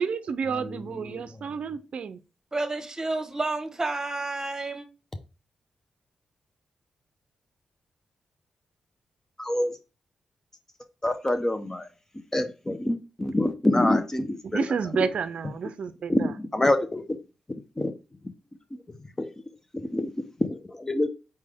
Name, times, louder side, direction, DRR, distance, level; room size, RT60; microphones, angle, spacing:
voice 1, 0.0-2.2 14.4-16.3, right 6 dB, 65° right, 12 dB, 0.4 m, -30 dB
voice 2, 2.5-4.9, right 2 dB, 25° right, 6 dB, 1.2 m, -30 dB
voice 3, 9.4-9.7 11.0-11.9 12.3-14.6 16.1-17.0 17.8-17.9 19.2-19.3 19.7-20.1 20.4-21.1, left 1 dB, 20° left, 8 dB, 0.7 m, -26 dB
4.4 x 3.3 x 3.5 m, 0.31 s
supercardioid pair, 50°, 2 cm